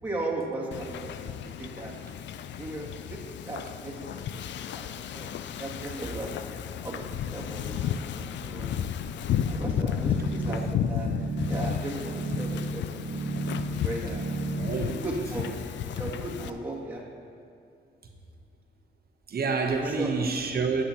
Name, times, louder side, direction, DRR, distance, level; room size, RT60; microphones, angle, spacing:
voice 1, 0.0-1.9 2.6-5.3 5.6-6.4 6.8-8.8 9.5-13.3 13.7-14.3 15.0-15.5 15.9-17.1 19.8-20.1, right 2 dB, 10° right, -6 dB, 2.5 m, -37 dB
Wind / Ocean, 0.7-16.5, left 9 dB, 75° left, 0.4 m, -33 dB
sound 1, 9.5-14.7, right 2 dB, 85° right, 1.0 m, -33 dB
voice 2, 14.6-15.0 19.3-20.8, right 4 dB, 55° right, 3 dB, 1.1 m, -28 dB
13.5 x 8.8 x 3.0 m, 2.5 s
cardioid pair, 85°, 19 cm